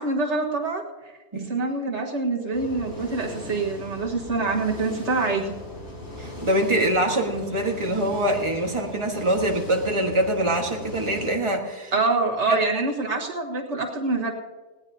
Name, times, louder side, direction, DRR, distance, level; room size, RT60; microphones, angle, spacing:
voice 1, 0.0-5.5 11.9-14.3, right 3 dB, 85° right, 0 dB, 1.9 m, -26 dB
sound 1, 2.5-11.3, left 1 dB, 90° left, 4.6 m, -39 dB
voice 2, 6.2-11.9 12.5-12.6, right 1 dB, 25° right, 2 dB, 1.6 m, -24 dB
20.0 x 17.0 x 2.8 m, 1.2 s
omnidirectional pair, 1.2 m